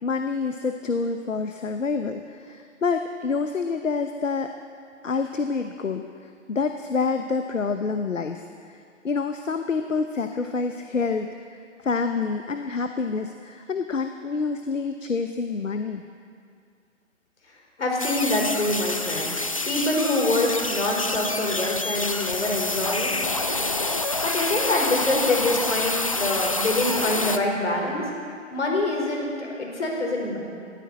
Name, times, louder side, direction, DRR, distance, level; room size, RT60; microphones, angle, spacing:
voice 1, 0.0-4.5 5.0-8.8 9.0-11.3 11.8-16.0, left 4 dB, 80° left, 7 dB, 1.0 m, -27 dB
voice 2, 17.8-23.2 24.2-28.1 28.5-30.4, left 2 dB, 65° left, 0 dB, 4.5 m, -25 dB
sound 1, 18.0-27.4, left 2 dB, 30° left, 0.4 m, -27 dB
19.5 x 14.0 x 4.1 m, 2.3 s
figure-of-eight pair, 135°, 38 cm